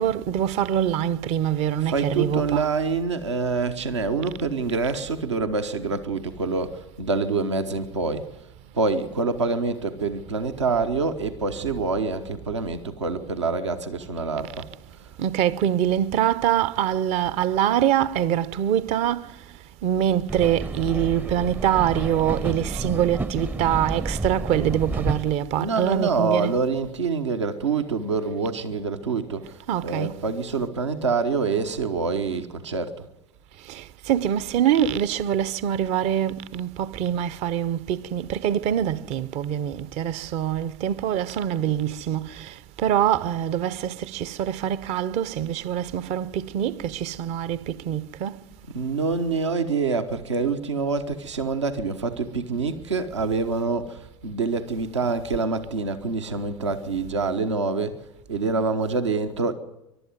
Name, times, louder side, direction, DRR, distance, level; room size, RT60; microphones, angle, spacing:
voice 1, 0.0-2.6 14.6-14.7 15.2-19.4 19.8-26.5 29.7-30.2 33.6-48.4, right 10 dB, 45° right, 0.8 m, -24 dB
voice 2, 1.8-8.3 8.7-14.7 25.6-29.6 29.8-33.0 48.7-57.9 58.3-59.5, right 4 dB, 75° right, 1.1 m, -26 dB
sound 1, 20.3-25.4, right 2 dB, 10° right, 0.6 m, -30 dB
22.5 x 12.0 x 9.5 m
figure-of-eight pair, 70°, 15 cm